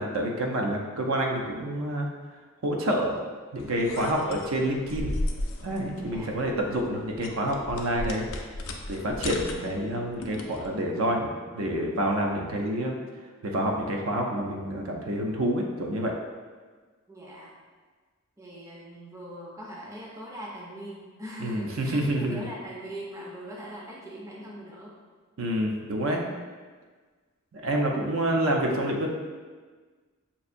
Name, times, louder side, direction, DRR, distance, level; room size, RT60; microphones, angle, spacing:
voice 1, 0.0-2.1 2.6-3.2 3.5-5.1 5.6-8.3 8.9-13.0 13.4-16.1 21.4-22.5 25.4-26.3 27.5-29.1, right 1 dB, 70° right, 1 dB, 0.5 m, -28 dB
sound 1, 3.6-10.7, left 2 dB, 65° left, 0.4 m, -36 dB
voice 2, 6.0-6.3 17.1-17.6 18.4-24.9, right 1 dB, 15° right, -4 dB, 0.5 m, -41 dB
5.4 x 2.6 x 2.5 m, 1.4 s
head